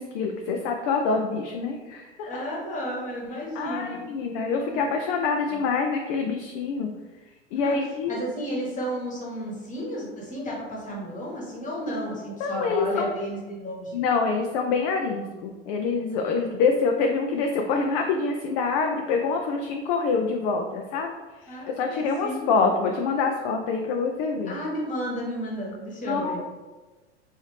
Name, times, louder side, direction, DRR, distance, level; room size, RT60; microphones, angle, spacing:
voice 1, 0.0-2.4 3.6-6.9 7.5-8.2 12.4-13.1 13.9-21.1 21.4-24.6 26.1-26.5, left 4 dB, 45° left, 3 dB, 0.4 m, -26 dB
voice 2, 2.2-4.0 4.3-4.8 5.5-5.6 7.5-14.0 21.5-22.7 24.5-26.4, equal, 25° left, -3 dB, 1.2 m, -33 dB
3.2 x 2.6 x 3.2 m, 1.2 s
hypercardioid pair, 95°, 34 cm